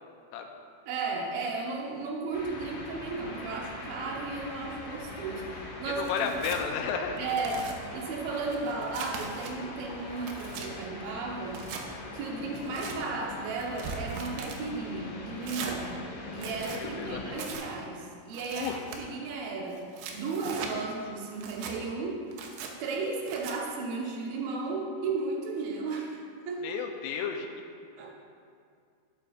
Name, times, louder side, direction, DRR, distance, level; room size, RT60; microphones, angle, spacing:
voice 1, 0.9-6.5 7.2-11.6 12.1-15.9 16.3-19.9 20.1-22.3 22.8-26.8 28.0-28.1, right 3 dB, 70° right, -1 dB, 2.3 m, -34 dB
sound 1, 2.3-17.5, left 2 dB, 65° left, 3.2 m, -42 dB
voice 2, 5.9-7.3 16.8-17.3 18.6-18.8 26.6-27.5, left 6 dB, 80° left, 3 dB, 3.2 m, -32 dB
Tearing, 6.0-6.6 7.2-7.8 8.3-9.5 10.0-10.7 11.5-11.8 12.5-13.0 13.6-14.6 15.4-15.8 16.3-16.8 17.4-17.7 18.3-19.0 19.7-20.7 21.3-21.8 22.3-22.7 23.3-23.6, right 6 dB, 85° right, 3.3 m, -40 dB
12.0 x 12.0 x 2.5 m, 2.3 s
omnidirectional pair, 5.6 m